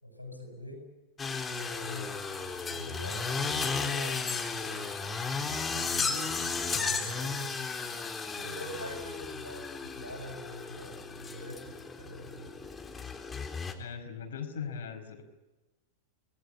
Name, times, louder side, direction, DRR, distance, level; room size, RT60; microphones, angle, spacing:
voice 1, 0.0-0.9 1.5-4.9 5.7-7.6 8.4-12.6, left 1 dB, 90° left, 5 dB, 7.9 m, -44 dB
sound 1, 1.2-13.7, left 4 dB, 15° left, 3.8 m, -34 dB
voice 2, 13.8-15.2, left 6 dB, 60° left, 7 dB, 5.0 m, -39 dB
29.5 x 21.0 x 8.5 m, 1.2 s
figure-of-eight pair, 90°, 0 cm